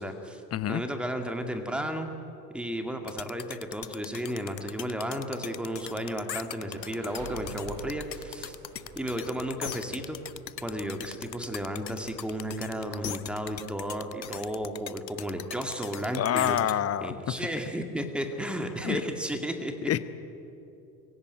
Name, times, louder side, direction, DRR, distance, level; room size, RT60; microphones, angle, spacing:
voice 1, 0.0-0.4 0.7-2.1 2.5-8.6 8.9-10.2 10.6-16.6 17.0-19.9, equal, ahead, 5 dB, 2.2 m, -33 dB
voice 2, 0.5-0.8 16.1-17.4 18.8-19.0 19.9-20.0, left 10 dB, 30° left, 14 dB, 1.0 m, -27 dB
sound 1, 3.1-16.7, left 10 dB, 90° left, 0.7 m, -39 dB
sound 2, 4.4-16.2, right 4 dB, 40° right, 4.6 m, -50 dB
24.0 x 16.5 x 9.4 m, 2.9 s
figure-of-eight pair, 75°, 49 cm